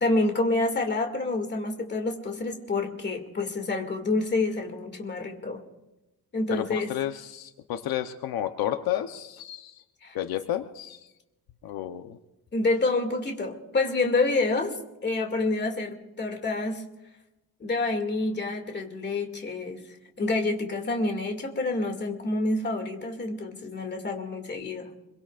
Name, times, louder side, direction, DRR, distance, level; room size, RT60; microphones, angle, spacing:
voice 1, 0.0-5.6 6.3-6.9 10.0-10.2 12.5-16.9 17.6-19.8 20.2-24.9, left 2 dB, 30° left, 3 dB, 2.4 m, -28 dB
voice 2, 6.5-9.8 10.1-11.1 11.6-12.2, left 11 dB, 80° left, 7 dB, 0.9 m, -31 dB
25.0 x 23.0 x 2.5 m, 0.98 s
cardioid pair, 150°, 36 cm